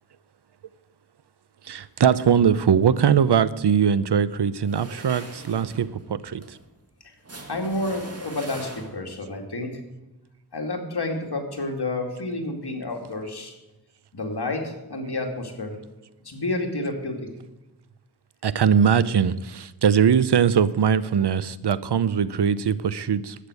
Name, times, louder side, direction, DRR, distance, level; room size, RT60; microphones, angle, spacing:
voice 1, 1.7-6.4 18.4-23.4, right 7 dB, 80° right, 17 dB, 0.7 m, -21 dB
sound 1, 4.6-9.3, right 2 dB, 35° right, 2.1 m, -42 dB
voice 2, 7.5-9.8 10.5-13.5 14.1-15.8 16.2-17.3, left 2 dB, 75° left, 2 dB, 2.5 m, -30 dB
11.5 x 8.7 x 8.3 m, 1.0 s
wide cardioid pair, 60°, 40 cm